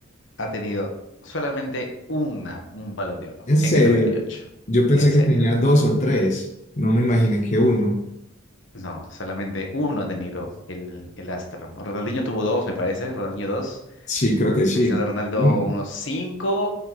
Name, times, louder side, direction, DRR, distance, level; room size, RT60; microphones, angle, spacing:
voice 1, 0.4-0.9 1.2-3.3 3.6-4.0 4.3-4.4 4.9-5.4 8.7-13.8 14.7-16.7, left 1 dB, 65° left, 1 dB, 1.4 m, -28 dB
voice 2, 3.5-4.2 4.7-6.4 6.8-7.9 14.1-15.0 15.4-15.7, equal, 40° left, -1 dB, 1.1 m, -19 dB
8.8 x 4.7 x 4.2 m, 0.84 s
head